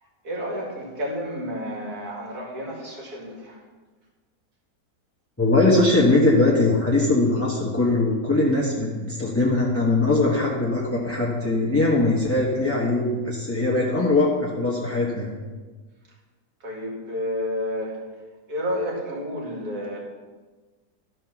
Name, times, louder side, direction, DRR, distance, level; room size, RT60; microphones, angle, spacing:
voice 1, 0.2-3.6 16.6-18.0 18.5-20.0, equal, 75° right, -1 dB, 2.6 m, -30 dB
voice 2, 5.4-15.3, left 2 dB, 10° left, -6 dB, 1.2 m, -21 dB
13.0 x 4.6 x 6.0 m, 1.3 s
omnidirectional pair, 1.7 m